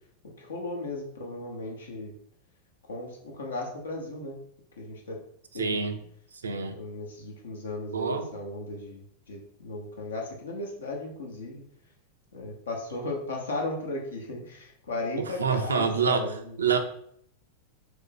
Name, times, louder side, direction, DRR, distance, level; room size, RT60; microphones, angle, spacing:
voice 1, 0.4-2.1 2.9-4.4 4.8-5.2 5.5-5.8 6.7-9.0 9.3-11.6 12.3-16.5, left 2 dB, 75° left, 0 dB, 0.8 m, -36 dB
voice 2, 5.5-6.0 6.4-6.8 7.9-8.3 15.2-16.3 16.6-16.8, right 6 dB, 75° right, 7 dB, 0.4 m, -26 dB
3.0 x 2.5 x 3.7 m, 0.67 s
figure-of-eight pair, 90°, 0 cm